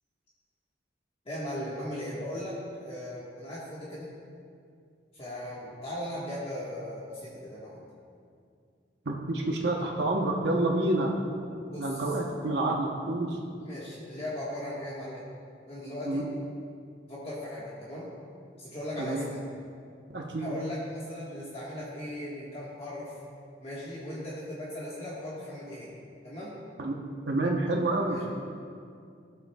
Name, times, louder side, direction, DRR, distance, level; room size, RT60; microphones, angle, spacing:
voice 1, 1.2-4.1 5.1-7.8 11.7-12.0 13.6-15.3 15.7-16.2 17.1-18.1 18.6-19.4 20.4-23.1 23.6-25.9 26.2-26.5 28.0-28.2, left 1 dB, 35° left, -7 dB, 1.4 m, -38 dB
voice 2, 9.1-11.1 11.8-13.4 16.1-16.3 19.0-19.3 20.1-20.6 26.8-27.0 27.3-28.2, right 2 dB, 70° right, 0 dB, 0.9 m, -28 dB
14.5 x 7.9 x 2.3 m, 2.3 s
head